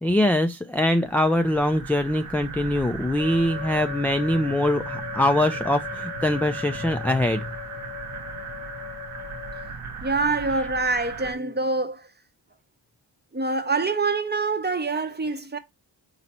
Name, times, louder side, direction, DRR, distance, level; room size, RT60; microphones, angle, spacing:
voice 1, 0.0-7.5, left 1 dB, 5° left, 0.3 m, -23 dB
sound 1, 0.9-11.3, right 5 dB, 85° right, 0.9 m, -37 dB
Wind instrument woodwind instrument, 3.2-9.7, left 14 dB, 55° left, 0.9 m, -39 dB
voice 2, 10.0-12.1 13.3-15.6, right 3 dB, 20° right, 0.7 m, -25 dB
4.1 x 3.0 x 4.1 m
cardioid pair, 45°, 49 cm